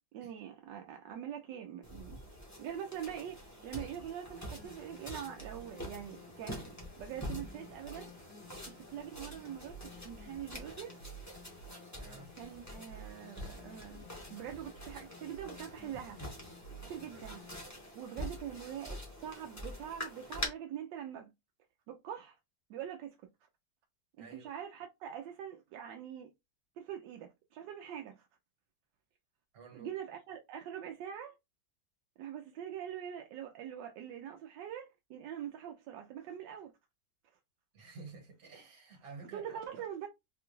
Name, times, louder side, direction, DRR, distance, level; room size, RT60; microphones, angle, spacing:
voice 1, 0.1-2.2 2.6-8.1 8.7-11.0 12.4-16.2 16.9-17.4 17.9-21.3 21.9-22.3 22.7-23.2 24.2-26.3 26.8-28.3 29.7-31.3 32.2-36.7 39.3-40.1, right 9 dB, 80° right, 1.2 m, -44 dB
sound 1, 1.8-20.5, left 1 dB, 10° left, 0.8 m, -46 dB
sound 2, 4.3-17.6, right 1 dB, 55° left, 1.4 m, -54 dB
voice 2, 12.0-12.4 17.1-17.3 24.2-24.5 29.5-29.9 37.7-39.8, right 4 dB, 55° right, 1.7 m, -51 dB
4.1 x 2.3 x 3.0 m
omnidirectional pair, 1.9 m